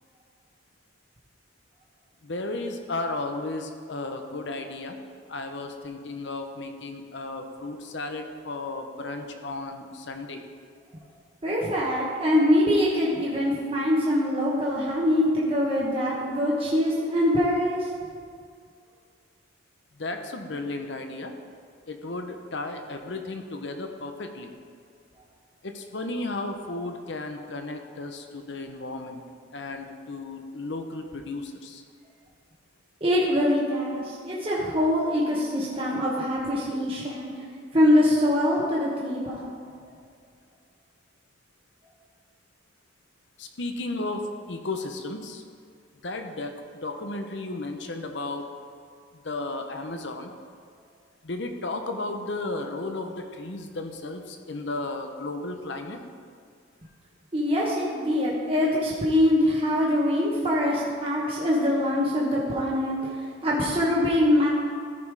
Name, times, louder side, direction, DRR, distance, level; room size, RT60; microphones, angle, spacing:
voice 1, 2.2-5.0 5.3-10.4 20.0-21.3 21.9-24.5 25.6-29.2 29.5-31.8 43.4-44.2 44.5-45.4 46.0-48.4 49.1-50.3 51.2-56.0, left 2 dB, 65° left, 5 dB, 0.9 m, -34 dB
voice 2, 11.4-17.9 33.0-37.3 37.7-39.5 57.3-64.5, left 1 dB, 30° right, -5 dB, 1.2 m, -23 dB
14.0 x 5.5 x 4.8 m, 2.2 s
head